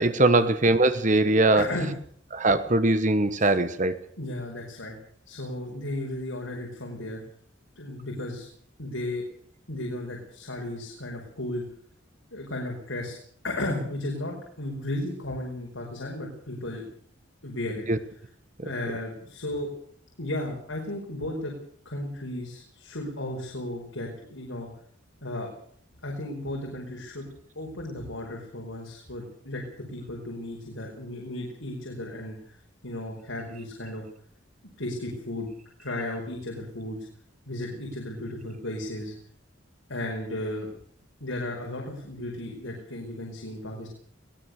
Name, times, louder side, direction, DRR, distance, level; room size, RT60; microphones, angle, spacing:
voice 1, 0.0-1.7 2.3-4.0 17.9-18.0, right 2 dB, 40° right, 11 dB, 1.3 m, -21 dB
voice 2, 1.5-1.9 3.4-3.5 4.2-5.0 5.3-7.2 7.8-8.5 8.8-9.2 9.7-11.6 12.3-13.2 13.4-16.8 17.4-17.8 18.6-19.7 20.2-21.5 21.9-24.7 25.2-25.5 26.0-27.3 27.6-32.6 32.8-34.0 34.8-35.5 35.8-37.0 37.5-39.1 39.9-40.7 41.2-43.9, left 1 dB, 90° left, 0 dB, 5.1 m, -34 dB
22.0 x 18.0 x 6.7 m, 0.62 s
head